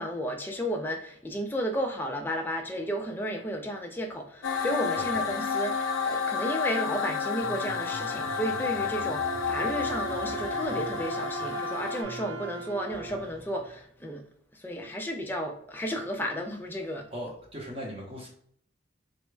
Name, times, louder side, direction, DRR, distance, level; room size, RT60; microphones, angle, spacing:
voice 1, 0.0-14.2 14.5-17.1, equal, 10° left, 0.4 m, -33 dB
sound 1, 4.4-12.0, left 6 dB, 80° left, 0.4 m, -31 dB
voice 2, 5.0-5.3 14.9-15.0 17.1-18.3, equal, 30° right, 0.7 m, -39 dB
sound 2, 7.4-13.9, right 1 dB, 80° right, 1.4 m, -45 dB
Wind instrument woodwind instrument, 9.1-13.3, right 5 dB, 55° right, 0.4 m, -38 dB
3.3 x 2.1 x 3.1 m
head